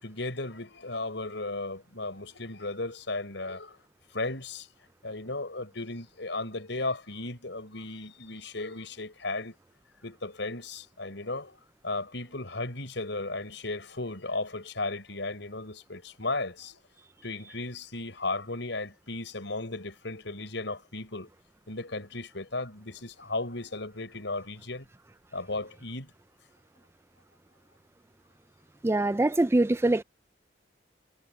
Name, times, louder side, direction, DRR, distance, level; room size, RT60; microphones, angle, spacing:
voice 1, 0.0-3.8 4.1-4.7 5.0-9.6 10.0-11.6 11.8-16.8 17.2-21.3 21.7-24.9 25.3-26.1, left 2 dB, 70° left, 5.9 m, -35 dB
voice 2, 28.8-30.0, right 2 dB, 15° right, 0.4 m, -23 dB
head